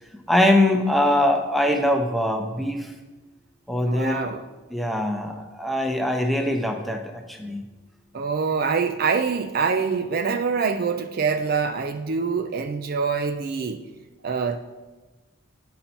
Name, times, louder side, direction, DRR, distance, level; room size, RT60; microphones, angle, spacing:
voice 1, 0.3-2.9 3.7-4.3 4.7-7.6, left 1 dB, ahead, 3 dB, 0.6 m, -22 dB
voice 2, 3.9-4.4 8.1-13.8 14.2-14.6, right 5 dB, 45° right, 7 dB, 0.4 m, -25 dB
10.0 x 5.5 x 4.3 m, 1.2 s
head